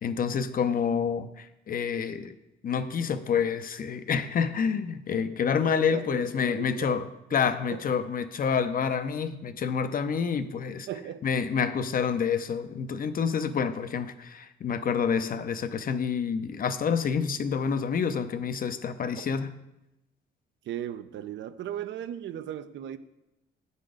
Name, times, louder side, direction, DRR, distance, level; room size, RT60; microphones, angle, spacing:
voice 1, 0.0-2.4 2.6-10.9 11.2-19.5, left 6 dB, 45° left, 11 dB, 0.6 m, -28 dB
voice 2, 5.7-7.0 7.3-7.8 10.9-11.3 19.2-19.3 20.7-23.0, right 10 dB, 70° right, 13 dB, 0.5 m, -37 dB
8.9 x 4.1 x 4.9 m, 0.93 s
cardioid pair, 90°, 20 cm